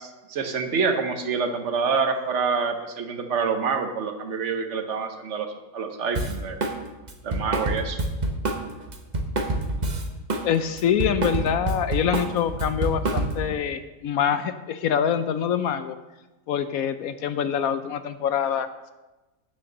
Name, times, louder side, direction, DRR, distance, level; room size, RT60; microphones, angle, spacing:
voice 1, 0.0-5.5 5.7-6.6 7.2-8.0, right 5 dB, 50° right, 6 dB, 1.2 m, -27 dB
Drum kit, 6.1-6.8 7.1-10.5 10.8-13.5, right 2 dB, 35° right, 0.9 m, -27 dB
voice 2, 10.4-16.0 16.5-18.9, left 8 dB, 70° left, 11 dB, 0.9 m, -25 dB
9.5 x 6.7 x 6.5 m, 1.1 s
omnidirectional pair, 1.8 m